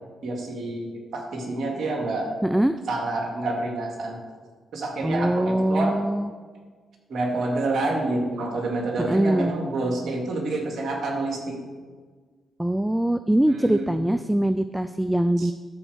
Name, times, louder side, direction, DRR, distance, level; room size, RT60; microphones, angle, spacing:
voice 1, 0.2-2.3 2.9-4.2 4.7-6.0 7.1-11.6 13.5-14.0 15.4-15.5, right 2 dB, 65° right, 1 dB, 2.1 m, -28 dB
voice 2, 2.4-2.8 5.0-6.3 9.0-9.5 12.6-15.5, right 1 dB, 5° right, 11 dB, 0.4 m, -22 dB
13.0 x 4.5 x 6.3 m, 1.5 s
supercardioid pair, 60°, 0 cm